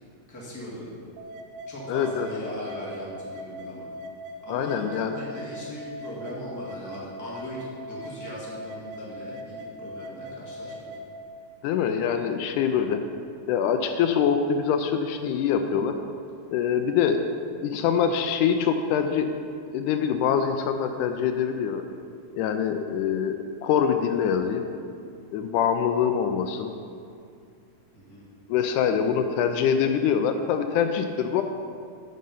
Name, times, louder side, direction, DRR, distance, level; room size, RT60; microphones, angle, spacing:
voice 1, 0.3-0.9 1.7-3.9 4.4-11.0 27.9-28.3, equal, 10° left, -6 dB, 1.4 m, -39 dB
sound 1, 1.2-11.2, equal, 75° right, 1.7 m, -40 dB
voice 2, 1.9-2.3 4.5-5.2 11.6-13.0 13.5-15.9 16.5-17.2 17.6-19.3 19.7-21.8 22.4-24.6 25.3-26.7 28.5-31.4, left 7 dB, 80° left, 7 dB, 2.0 m, -24 dB
9.4 x 6.4 x 5.5 m, 2.4 s
omnidirectional pair, 3.6 m